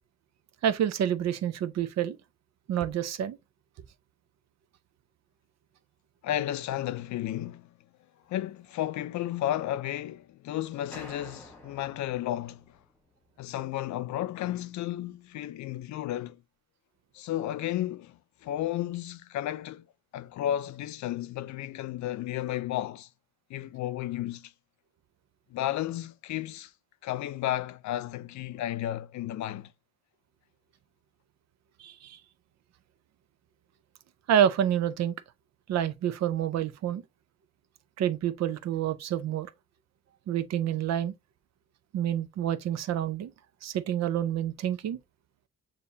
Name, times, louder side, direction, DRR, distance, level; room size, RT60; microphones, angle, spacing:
voice 1, 0.6-2.2 2.7-3.4 31.8-32.2 34.3-35.2 35.7-37.0 38.0-39.5 40.3-41.1 41.9-43.3 43.6-45.0, right 10 dB, 60° right, 0.6 m, -28 dB
voice 2, 6.2-7.7 8.3-12.8 13.4-16.4 17.1-19.9 20.1-23.1 23.5-24.5 25.5-26.7 27.0-29.7, left 13 dB, 70° left, 0.5 m, -33 dB
sound 1, 10.9-13.3, left 1 dB, 5° left, 1.4 m, -49 dB
6.7 x 2.7 x 2.7 m
cardioid pair, 90°, 30 cm